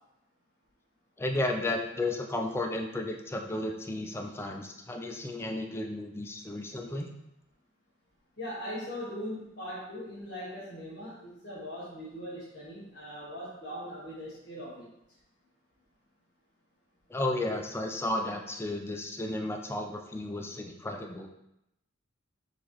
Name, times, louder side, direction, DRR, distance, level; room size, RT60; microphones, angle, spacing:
voice 1, 1.2-7.1 17.1-21.3, left 1 dB, 10° left, 3 dB, 0.3 m, -33 dB
voice 2, 8.4-14.9, equal, 55° left, -8 dB, 1.2 m, -40 dB
4.1 x 2.9 x 3.0 m, 0.85 s
head